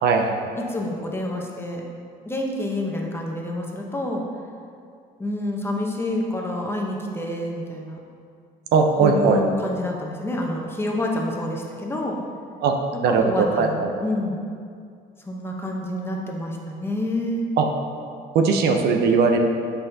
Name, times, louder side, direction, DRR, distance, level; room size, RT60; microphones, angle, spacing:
voice 1, 0.0-0.5 8.7-9.4 12.6-12.7 13.0-13.9 17.6-17.7 18.3-19.4, right 5 dB, 75° right, 3 dB, 0.7 m, -19 dB
voice 2, 0.6-1.8 2.3-4.2 5.2-8.0 9.0-12.2 12.9-14.4 15.3-17.5, left 1 dB, 15° left, -1 dB, 0.9 m, -28 dB
7.6 x 5.6 x 2.8 m, 2.3 s
cardioid pair, 110°, 17 cm